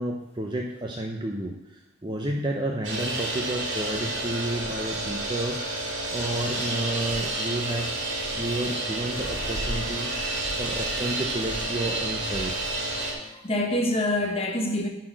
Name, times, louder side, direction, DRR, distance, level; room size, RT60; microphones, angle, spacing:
voice 1, 0.0-5.6 6.1-7.9 8.3-10.1 10.6-12.7, right 1 dB, 20° right, 1 dB, 0.6 m, -31 dB
sound 1, 2.8-13.1, right 2 dB, 60° right, 2.1 m, -30 dB
voice 2, 10.6-11.1 13.2-14.9, left 1 dB, 30° left, 2 dB, 1.1 m, -27 dB
9.7 x 4.3 x 6.2 m, 0.96 s
head